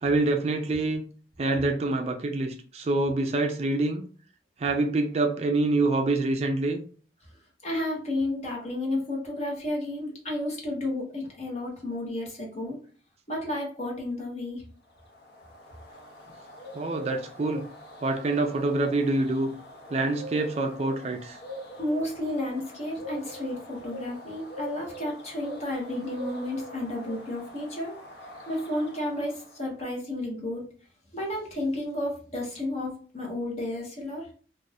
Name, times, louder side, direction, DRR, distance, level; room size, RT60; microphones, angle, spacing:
voice 1, 0.0-1.0 1.4-4.1 4.6-6.8 16.7-17.7 18.0-19.5 19.9-21.4, right 2 dB, 35° right, 0.3 m, -26 dB
voice 2, 7.6-12.8 13.3-14.6 21.8-28.0 28.5-30.6 31.1-34.3, left 1 dB, 40° left, 0.9 m, -32 dB
sound 1, 15.0-29.6, equal, 65° left, 0.6 m, -43 dB
2.5 x 2.4 x 3.3 m
head